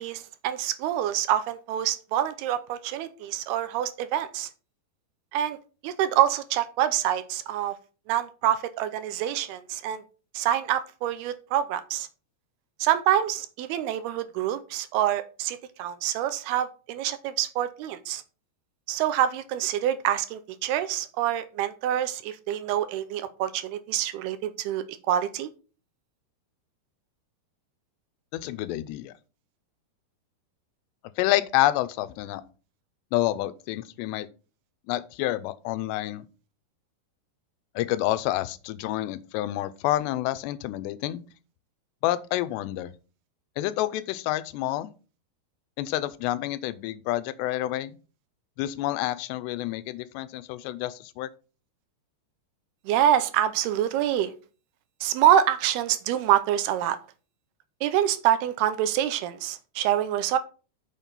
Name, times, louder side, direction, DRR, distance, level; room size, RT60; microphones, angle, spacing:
voice 1, 0.0-4.5 5.3-5.6 5.8-7.8 8.1-10.0 10.3-12.1 12.8-18.2 18.9-25.5 52.9-54.3 55.0-57.0 57.8-60.4, right 11 dB, 80° right, 2.5 m, -26 dB
voice 2, 28.3-29.1 31.2-32.4 33.1-34.3 34.9-36.3 37.8-41.2 42.0-42.9 43.6-44.9 45.8-48.0 48.6-51.3, left 15 dB, 85° left, 2.8 m, -28 dB
7.4 x 6.5 x 5.4 m
omnidirectional pair, 4.9 m